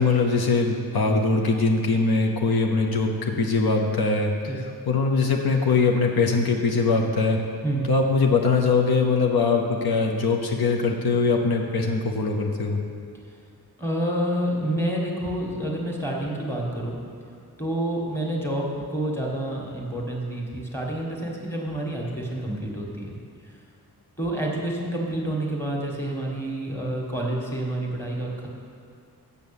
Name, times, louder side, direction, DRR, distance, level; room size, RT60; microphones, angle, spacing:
voice 1, 0.0-3.1 3.4-4.5 4.9-7.4 7.9-12.8, left 4 dB, 70° left, 1 dB, 0.9 m, -22 dB
voice 2, 13.8-17.0 17.6-23.2 24.2-28.5, right 1 dB, 5° left, -2 dB, 1.6 m, -28 dB
8.0 x 6.8 x 7.1 m, 2.4 s
wide cardioid pair, 125°, 38 cm